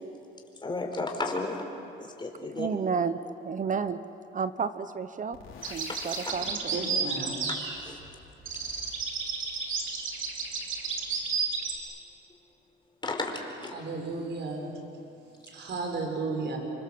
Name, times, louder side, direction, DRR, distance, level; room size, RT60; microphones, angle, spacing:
voice 1, 0.6-1.6 2.0-2.7 7.8-8.0 13.0-13.3 13.6-13.7, left 2 dB, 25° left, 2 dB, 4.8 m, -33 dB
voice 2, 2.6-3.2 3.4-4.0 4.3-5.4 5.7-6.7, right 6 dB, 40° right, 12 dB, 0.9 m, -31 dB
sound 1, 5.3-6.5, left 6 dB, 80° left, 3.7 m, -46 dB
sound 2, 5.6-8.1 8.4-11.7, right 5 dB, 80° right, 3.7 m, -32 dB
voice 3, 6.7-7.5 13.7-14.7 15.5-16.6, right 3 dB, 60° right, 2 dB, 5.8 m, -33 dB
27.5 x 24.0 x 7.7 m, 2.7 s
cardioid pair, 90°, 20 cm